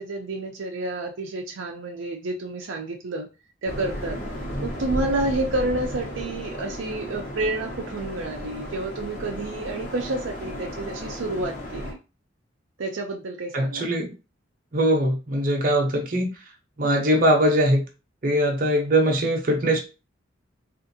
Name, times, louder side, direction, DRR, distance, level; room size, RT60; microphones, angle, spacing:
voice 1, 0.0-3.3 3.6-4.2 4.6-12.0 12.8-13.9, right 2 dB, 75° right, 2 dB, 0.5 m, -29 dB
sound 1, 3.7-11.9, equal, 45° left, 0.9 m, -34 dB
voice 2, 13.5-14.1 14.7-16.3 16.8-17.8 18.2-19.8, right 1 dB, 45° right, 1 dB, 0.8 m, -21 dB
3.6 x 2.5 x 2.7 m, 0.30 s
head